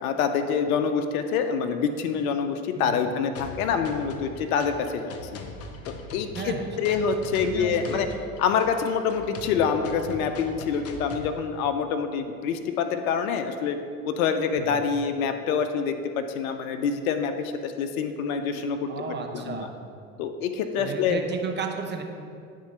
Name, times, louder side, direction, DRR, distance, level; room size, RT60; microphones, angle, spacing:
voice 1, 0.0-5.1 6.1-8.1 8.4-13.8 14.1-19.1 19.3-19.7 20.2-21.2, left 6 dB, 85° left, 7 dB, 0.5 m, -26 dB
voice 2, 2.7-3.1 6.3-7.0 7.4-8.1 14.5-14.8 18.9-19.7 20.8-22.0, right 5 dB, 25° right, 3 dB, 0.8 m, -34 dB
sound 1, 3.4-11.4, left 3 dB, 35° left, 0.6 m, -41 dB
9.5 x 3.7 x 3.2 m, 2.4 s
hypercardioid pair, 80°, 41 cm